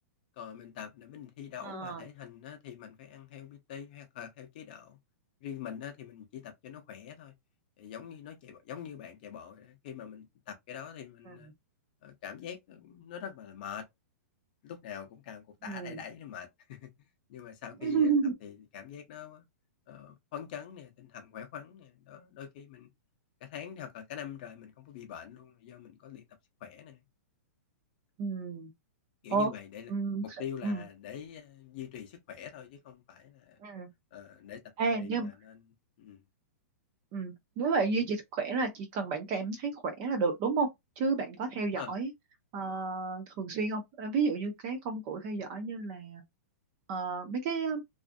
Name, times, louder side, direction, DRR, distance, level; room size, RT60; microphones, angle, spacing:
voice 1, 0.4-5.0 5.4-7.3 7.8-11.5 12.0-13.9 14.6-16.9 17.3-18.1 18.4-19.4 19.9-22.9 23.4-26.3 26.6-27.0 29.2-29.9 30.2-33.6 34.1-35.6 36.0-36.2 41.7-41.9, left 9 dB, 35° left, 0.6 m, -44 dB
voice 2, 1.6-2.0 11.3-11.4 15.6-16.0 17.8-18.3 28.2-28.7 29.3-29.5 29.9-30.2 30.6-30.8 33.6-33.9 34.8-35.3 37.1-40.7 41.0-42.1 42.5-46.2 46.9-47.8, right 4 dB, 20° right, 0.3 m, -31 dB
2.4 x 2.4 x 2.5 m
hypercardioid pair, 175°, 8 cm